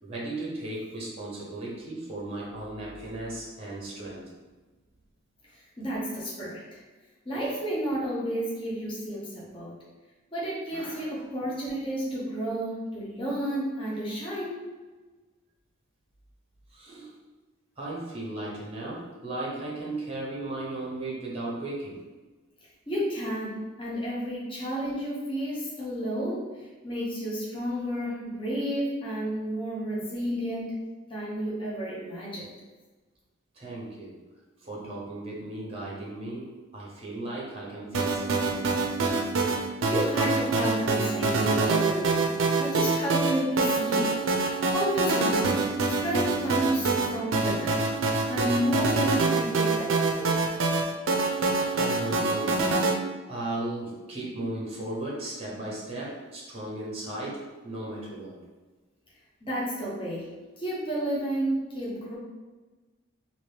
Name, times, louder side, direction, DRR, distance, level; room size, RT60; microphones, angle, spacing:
voice 1, 0.0-4.3 11.1-11.2 16.7-17.1 17.8-22.0 33.5-34.2 34.6-38.8 51.7-52.8 53.3-58.4, right 2 dB, 30° right, -4 dB, 0.9 m, -36 dB
voice 2, 5.5-6.8 7.2-9.7 10.3-14.6 22.9-30.8 31.1-32.5 39.4-44.1 44.4-47.8 48.3-50.4 59.4-60.3 60.6-62.1, right 1 dB, 25° left, -7 dB, 0.8 m, -31 dB
sound 1, 37.9-52.9, right 3 dB, 70° right, 0.4 m, -26 dB
2.9 x 2.8 x 3.3 m, 1.3 s
head